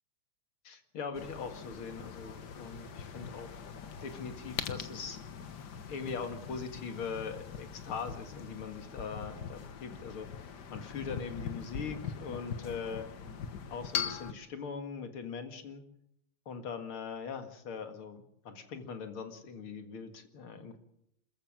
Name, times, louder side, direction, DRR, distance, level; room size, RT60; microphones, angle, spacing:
voice 1, 0.6-3.6 4.0-5.2 5.9-13.1 13.7-15.8 16.5-20.8, left 5 dB, 75° left, 7 dB, 2.8 m, -41 dB
sound 1, 1.1-14.3, left 7 dB, 55° left, 1.7 m, -42 dB
26.5 x 14.5 x 7.5 m, 0.77 s
omnidirectional pair, 2.4 m